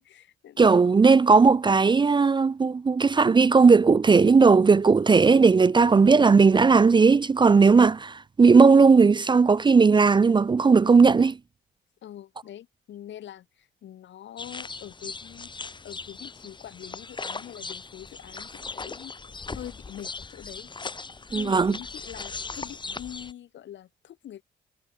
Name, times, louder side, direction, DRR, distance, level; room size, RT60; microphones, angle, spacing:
voice 1, 0.0-0.8 5.7-6.1 12.0-15.5 15.8-19.2 19.5-20.7 21.3-24.4, left 11 dB, 70° left, 1.9 m, -44 dB
voice 2, 0.6-11.4 21.3-21.7, right 4 dB, 25° right, 0.5 m, -17 dB
sound 1, 14.4-23.3, left 4 dB, 25° left, 1.2 m, -39 dB
cardioid pair, 90°, 20 cm